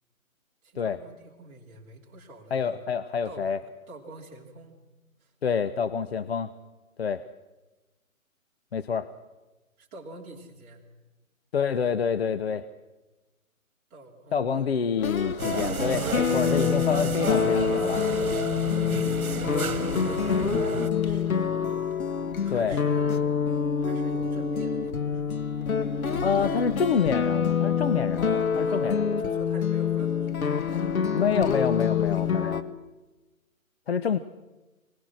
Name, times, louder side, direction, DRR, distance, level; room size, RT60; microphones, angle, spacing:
voice 1, 0.6-2.8 3.2-3.5 3.9-4.7 5.2-5.3 9.8-10.8 13.9-14.7 19.4-21.8 22.4-23.4 23.8-25.5 26.4-26.5 28.6-30.9, right 2 dB, 15° right, -3 dB, 3.2 m, -47 dB
voice 2, 2.5-3.6 5.4-6.5 7.0-7.2 8.7-9.1 11.5-12.7 14.3-18.1 22.5-22.8 26.2-29.0 31.1-32.6 33.9-34.2, left 6 dB, 45° left, 13 dB, 0.7 m, -27 dB
sound 1, 15.0-32.6, left 6 dB, 80° left, 1.5 m, -26 dB
sound 2, 15.4-20.9, right 5 dB, 80° right, 1.5 m, -32 dB
25.0 x 19.0 x 6.3 m, 1.1 s
hypercardioid pair, 155°, 42 cm